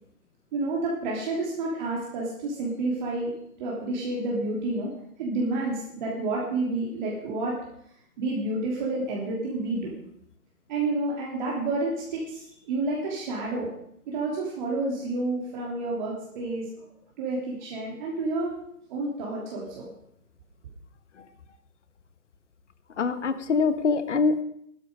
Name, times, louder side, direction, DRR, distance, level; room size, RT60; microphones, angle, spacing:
voice 1, 0.5-3.3 3.6-4.9 5.2-7.6 8.2-9.9 10.7-13.7 14.1-16.8 17.2-18.5 18.9-19.9, right 2 dB, 30° right, -4 dB, 3.3 m, -29 dB
voice 2, 23.0-24.4, left 4 dB, 50° left, 11 dB, 1.5 m, -24 dB
16.0 x 12.5 x 5.1 m, 0.72 s
figure-of-eight pair, 145°, 45 cm